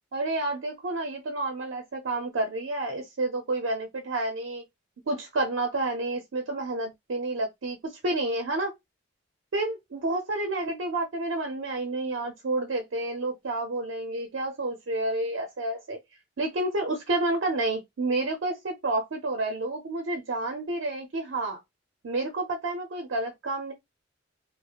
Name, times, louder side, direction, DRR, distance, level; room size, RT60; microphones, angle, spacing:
voice 1, 0.1-4.6 5.1-8.7 9.5-16.0 16.4-21.6 22.0-23.7, right 2 dB, 90° right, 0.5 m, -30 dB
2.8 x 2.1 x 2.3 m
head